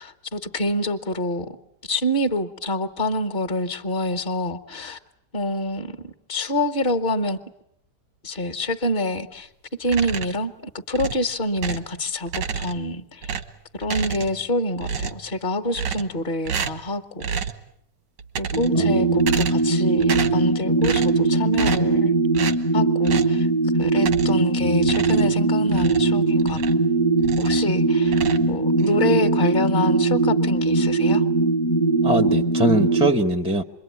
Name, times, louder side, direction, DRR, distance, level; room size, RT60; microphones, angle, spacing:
voice 1, 0.0-1.6 1.9-5.0 5.3-7.4 8.2-9.5 9.8-13.3 13.7-17.3 18.4-22.2 22.7-23.5 23.8-26.6 27.4-31.2, left 1 dB, 30° left, 5 dB, 1.4 m, -26 dB
sound 1, 9.8-10.5 10.9-11.9 12.3-12.9 13.2-14.5 14.8-15.3 15.7-16.2 16.5-16.9 17.2-17.6 18.2-18.8 19.2-19.7 20.0-20.5 20.8-21.2 21.5-22.0 22.3-22.6 23.0-23.4 24.0-24.5 24.8-26.9 27.2-27.7 28.1-28.9, right 7 dB, 90° right, 2.0 m, -30 dB
sound 2, 18.5-33.1, right 3 dB, 15° left, 1.0 m, -20 dB
voice 2, 18.7-19.3 24.6-25.1 32.0-33.6, right 1 dB, 5° right, 8 dB, 0.6 m, -23 dB
27.0 x 22.5 x 9.5 m, 0.77 s
omnidirectional pair, 1.9 m